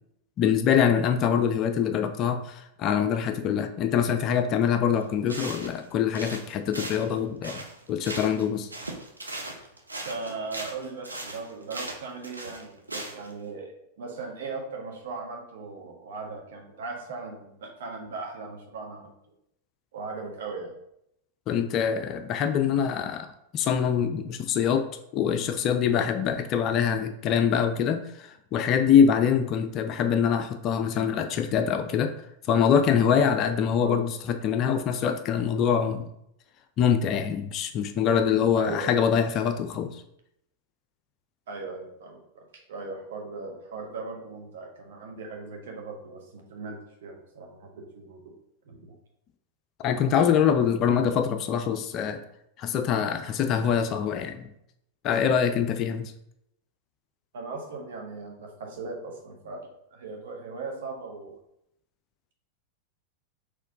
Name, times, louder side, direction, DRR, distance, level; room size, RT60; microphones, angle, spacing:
voice 1, 0.4-7.6 7.9-8.7 21.5-23.3 23.5-24.9 25.1-32.1 32.5-36.1 36.8-40.0 49.8-52.2 52.6-54.5 55.0-56.1, left 7 dB, 35° left, 7 dB, 0.3 m, -24 dB
sound 1, 5.0-5.1 5.3-5.9 6.1-8.5 8.7-13.3, right 2 dB, 80° right, 0.6 m, -38 dB
voice 2, 10.0-19.1 19.9-20.7 33.8-34.0 38.5-39.2 41.5-48.2 48.6-49.0 57.3-59.6 59.9-61.4, right 4 dB, 60° right, 1 dB, 1.0 m, -38 dB
4.3 x 3.0 x 3.8 m, 0.78 s
figure-of-eight pair, 90°, 0 cm